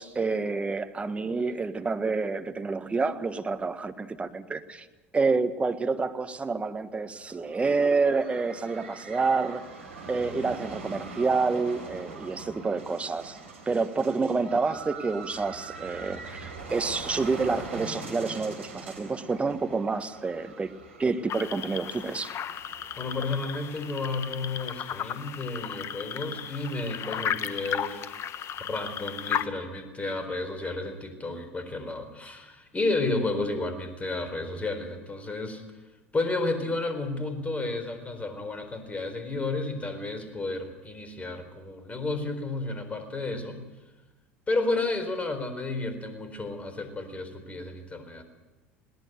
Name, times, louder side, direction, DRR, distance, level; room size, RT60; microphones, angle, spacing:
voice 1, 0.0-4.9 5.1-9.6 10.1-13.4 13.7-20.7 21.0-22.4, right 4 dB, 15° right, 10 dB, 1.5 m, -28 dB
sound 1, 7.2-24.8, right 4 dB, 75° right, 3.8 m, -43 dB
sound 2, 21.3-29.5, left 9 dB, 40° left, 1.3 m, -34 dB
voice 2, 23.0-28.1 28.7-35.6 36.1-43.6 44.5-48.2, left 2 dB, 20° left, 9 dB, 4.3 m, -32 dB
21.5 x 18.5 x 8.0 m, 1.1 s
figure-of-eight pair, 70°, 7 cm